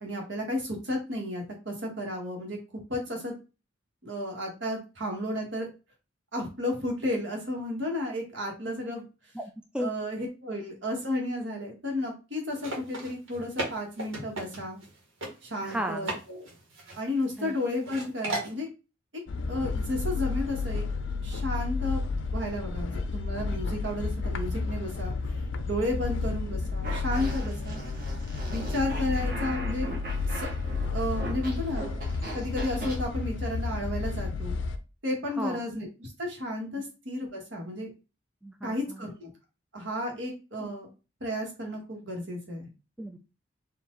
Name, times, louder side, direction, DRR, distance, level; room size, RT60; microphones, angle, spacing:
voice 1, 0.0-2.6 2.9-3.3 4.0-5.7 6.3-9.0 9.8-14.8 15.4-16.5 17.0-18.7 19.5-20.8 21.2-22.0 22.3-25.1 25.6-27.8 28.5-29.9 30.3-30.5 30.9-31.9 32.3-34.5 35.0-37.9 38.6-39.3 39.7-40.9 41.2-42.7, left 1 dB, 70° right, 1 dB, 1.6 m, -32 dB
voice 2, 9.3-9.9 15.6-16.1 17.4-17.5 35.4-35.6 38.4-39.0 43.0-43.2, equal, 5° right, 5 dB, 0.3 m, -34 dB
sound 1, 12.5-14.9 15.2-15.3 15.7-16.2 16.5-17.5 17.8-18.5, right 2 dB, 90° right, 1.5 m, -35 dB
sound 2, 19.3-34.8, left 4 dB, 70° left, 0.5 m, -31 dB
Fart, 26.8-33.0, right 2 dB, 45° right, 1.6 m, -40 dB
4.4 x 2.5 x 3.9 m, 0.31 s
head